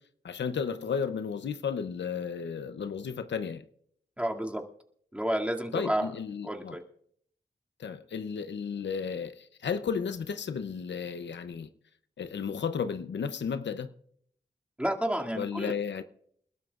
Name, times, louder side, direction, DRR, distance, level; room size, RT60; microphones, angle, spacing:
voice 1, 0.2-3.6 5.7-6.8 7.8-11.7 12.2-13.9 15.3-16.0, left 6 dB, 90° left, 0.7 m, -33 dB
voice 2, 4.2-4.6 5.1-6.1 6.4-6.8 14.8-15.7, right 1 dB, 5° right, 2.4 m, -30 dB
29.0 x 12.5 x 2.5 m
cardioid pair, 50°, 18 cm